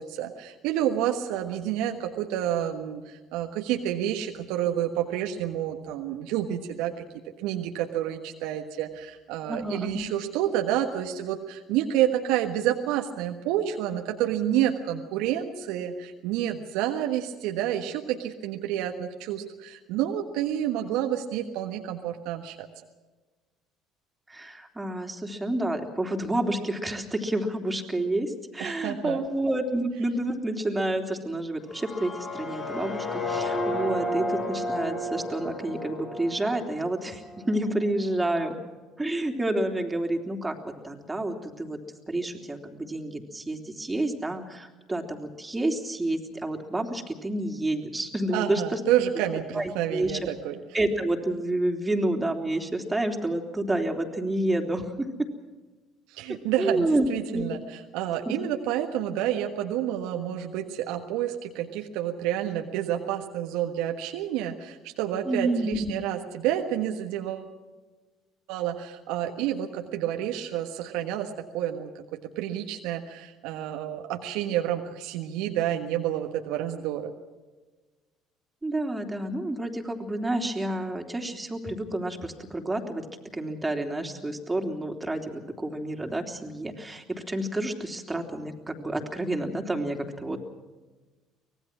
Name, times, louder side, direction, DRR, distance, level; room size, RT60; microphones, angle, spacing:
voice 1, 0.0-6.9 7.4-22.7 28.6-29.2 48.3-50.6 56.1-57.6 57.9-67.5 68.5-77.1, right 11 dB, 70° right, 4 dB, 1.4 m, -29 dB
voice 2, 9.5-10.1 24.3-38.6 39.0-41.8 42.1-48.8 49.5-50.2 50.7-55.3 56.6-57.1 57.3-57.4 58.2-58.3 65.2-65.9 78.6-83.0 83.3-90.4, right 1 dB, 15° right, 3 dB, 3.3 m, -29 dB
sound 1, 31.7-37.6, left 1 dB, 40° left, 7.4 m, -32 dB
24.5 x 18.5 x 6.2 m, 1.3 s
hypercardioid pair, 60°, 0 cm